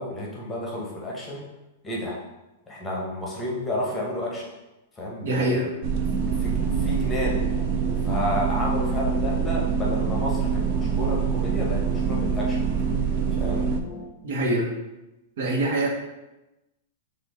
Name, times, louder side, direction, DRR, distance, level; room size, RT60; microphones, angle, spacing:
voice 1, 0.0-1.5 1.8-2.2 2.7-4.5 5.0-5.7 6.3-7.4 8.1-12.8 13.4-13.6, left 1 dB, 10° left, -4 dB, 1.0 m, -31 dB
voice 2, 5.2-5.6 14.2-14.7 15.4-15.9, right 1 dB, 70° right, -1 dB, 1.2 m, -24 dB
sound 1, 5.8-13.8, right 6 dB, 45° right, 0.4 m, -25 dB
sound 2, 6.1-14.0, left 3 dB, 35° left, 0.6 m, -38 dB
5.9 x 2.5 x 3.6 m, 1.0 s
supercardioid pair, 155°, 0 cm